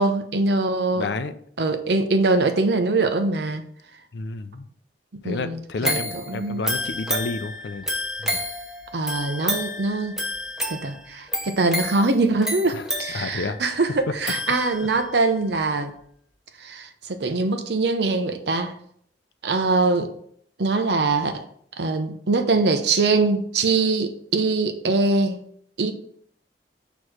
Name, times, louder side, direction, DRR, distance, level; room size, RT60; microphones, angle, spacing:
voice 1, 0.0-1.1 1.6-3.6 5.1-6.7 8.9-10.2 10.7-15.9 16.6-18.7 19.4-20.1 20.6-21.5 21.8-25.4 25.8-25.9, right 3 dB, 65° right, 0.7 m, -23 dB
voice 2, 0.9-1.3 4.1-4.7 5.2-7.9 8.2-8.4 12.7-12.8 13.1-13.6 14.1-14.3, left 3 dB, 75° left, 0.5 m, -30 dB
sound 1, 5.8-15.1 15.5-15.6, equal, 5° right, 0.8 m, -30 dB
6.3 x 3.1 x 5.0 m
head